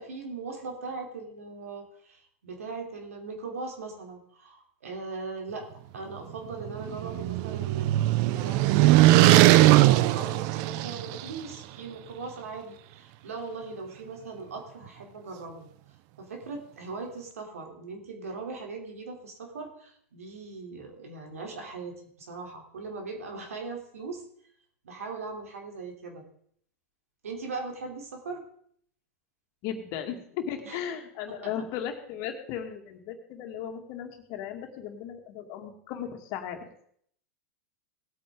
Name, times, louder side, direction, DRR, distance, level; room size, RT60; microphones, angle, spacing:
voice 1, 0.0-5.7 5.9-15.7 16.2-24.2 24.8-26.2 27.2-28.4 30.6-30.8 31.4-31.5, right 4 dB, 80° right, 2 dB, 3.0 m, -39 dB
sound 1, 6.5-11.3, right 16 dB, 50° right, 0.6 m, -20 dB
voice 2, 29.6-36.7, left 9 dB, 50° left, 4 dB, 2.2 m, -36 dB
18.5 x 8.7 x 3.7 m, 0.64 s
hypercardioid pair, 105°, 8 cm